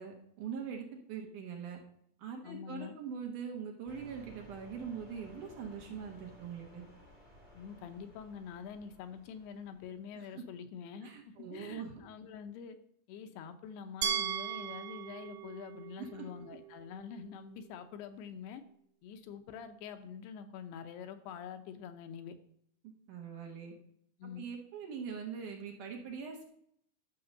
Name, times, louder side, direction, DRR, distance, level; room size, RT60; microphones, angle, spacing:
voice 1, 0.0-1.8 2.2-6.9 10.1-10.4 11.0-12.1 16.0-16.3 23.1-23.7 24.2-26.5, right 6 dB, 65° right, 1 dB, 2.3 m, -42 dB
voice 2, 2.4-2.9 7.5-12.8 13.1-18.6 19.0-22.4 24.2-24.5, left 7 dB, 80° left, 8 dB, 2.8 m, -46 dB
sound 1, 3.9-10.1, equal, 15° left, 1.8 m, -57 dB
Glass, 14.0-16.9, right 9 dB, 90° right, 3.0 m, -38 dB
12.0 x 4.7 x 6.5 m, 0.69 s
omnidirectional pair, 4.7 m